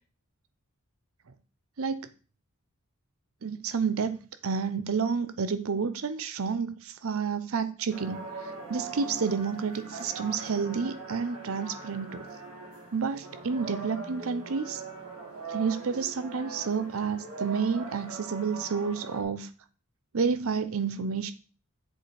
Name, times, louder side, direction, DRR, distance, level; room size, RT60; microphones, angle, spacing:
voice 1, 1.8-2.1 3.4-12.2 12.9-14.8 15.5-19.5 20.1-21.3, right 5 dB, 70° right, 0.6 m, -30 dB
sound 1, 7.9-19.2, right 4 dB, 85° right, 2.6 m, -41 dB
7.8 x 4.8 x 4.3 m
head